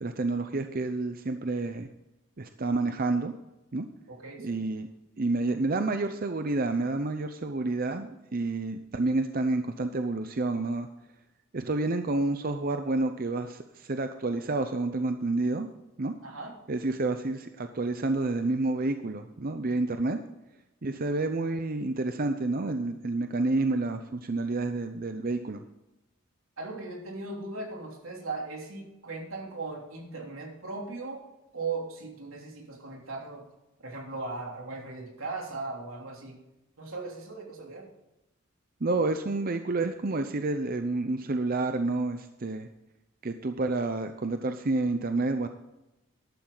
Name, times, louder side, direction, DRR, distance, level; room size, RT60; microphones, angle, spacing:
voice 1, 0.0-1.9 2.4-3.3 3.7-3.8 4.4-4.9 5.2-10.9 11.5-15.7 16.0-16.1 16.7-20.2 20.8-25.6 38.8-42.7 43.2-45.5, right 2 dB, 45° right, 8 dB, 0.7 m, -29 dB
voice 2, 4.1-4.6 16.2-16.5 26.6-31.2 31.5-33.4 33.8-36.4 36.8-37.9, right 3 dB, 85° right, 0 dB, 3.2 m, -38 dB
13.5 x 11.5 x 4.0 m, 0.96 s
head